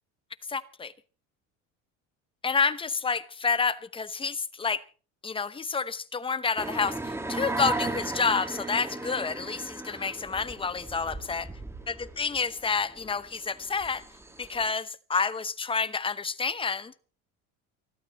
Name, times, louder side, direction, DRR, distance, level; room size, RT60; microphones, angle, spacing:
voice 1, 0.5-0.9 2.4-4.8 5.2-11.5 11.9-14.0 14.4-16.9, left 5 dB, 15° left, 0.9 m, -29 dB
sound 1, 6.6-14.7, right 2 dB, 10° right, 1.9 m, -36 dB
29.5 x 12.5 x 3.1 m
cardioid pair, 135°, 31 cm